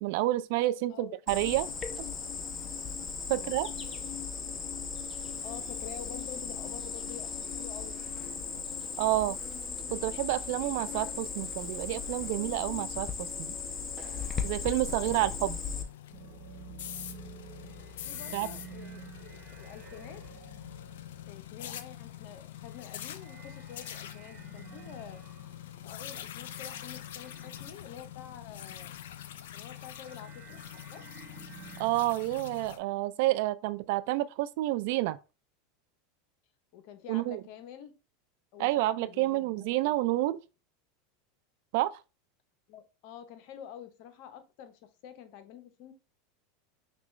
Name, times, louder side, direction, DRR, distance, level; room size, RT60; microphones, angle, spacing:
voice 1, 0.0-1.7 2.0-2.1 3.3-3.7 9.0-9.4 9.9-13.5 14.4-15.6 18.3-18.5 31.8-35.2 37.1-37.4 38.6-40.4 41.7-42.0, right 16 dB, 65° right, 0.3 m, -29 dB
Cricket, 1.3-15.8, left 5 dB, 25° left, 0.7 m, -37 dB
voice 2, 5.4-8.0 18.0-20.2 21.3-25.2 25.8-28.9 29.5-31.0 36.7-37.9 38.5-40.4 42.7-45.9, left 9 dB, 60° left, 0.8 m, -48 dB
sound 1, 15.4-32.8, left 11 dB, 80° left, 0.4 m, -45 dB
sound 2, 16.1-28.9 29.2-31.9, right 5 dB, 40° right, 0.8 m, -51 dB
5.9 x 2.3 x 3.1 m
supercardioid pair, 115°, 0 cm